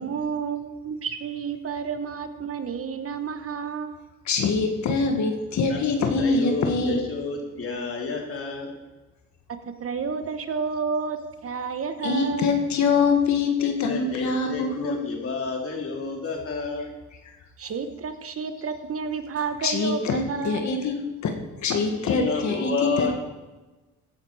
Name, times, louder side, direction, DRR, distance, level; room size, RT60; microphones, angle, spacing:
voice 1, 0.0-4.0 9.6-12.5 17.6-20.8, right 6 dB, 50° right, 9 dB, 1.2 m, -31 dB
voice 2, 4.3-7.0 12.0-15.0 16.8-17.4 19.6-21.0 21.2-23.1, left 4 dB, 70° left, 4 dB, 1.8 m, -24 dB
voice 3, 6.2-8.7 13.6-16.9 22.0-23.1, left 4 dB, 45° left, 0 dB, 3.5 m, -30 dB
16.0 x 8.9 x 4.8 m, 1.2 s
cardioid pair, 90°, 30 cm